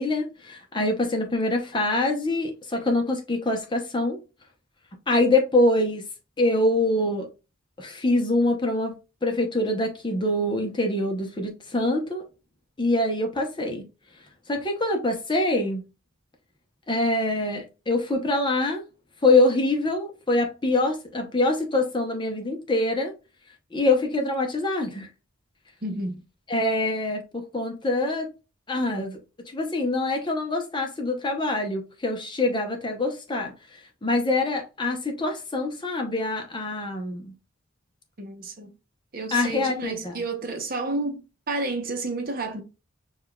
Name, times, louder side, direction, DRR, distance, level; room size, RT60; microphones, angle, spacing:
voice 1, 0.0-4.2 5.1-6.1 6.4-7.3 7.8-12.2 12.8-13.9 14.5-15.8 16.9-18.8 19.2-23.1 23.7-25.1 26.5-28.3 28.7-29.2 29.5-37.3 39.3-40.1, left 2 dB, 20° left, 0.7 m, -25 dB
voice 2, 25.8-26.2 38.2-38.7 39.1-42.6, right 2 dB, 45° right, 0.8 m, -30 dB
6.5 x 2.3 x 2.2 m
head